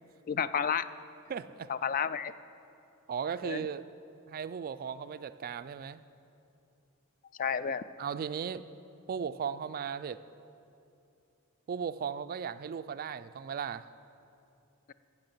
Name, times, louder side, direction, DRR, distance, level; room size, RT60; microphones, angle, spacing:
voice 1, 0.3-0.9 1.7-2.3 3.4-3.7 7.4-7.8, left 7 dB, 40° left, 14 dB, 0.3 m, -31 dB
voice 2, 1.3-1.7 3.1-3.8 4.3-6.0 8.0-8.7 9.1-10.2 11.7-13.8, right 7 dB, 40° right, 13 dB, 0.3 m, -36 dB
15.5 x 6.0 x 7.8 m, 2.7 s
head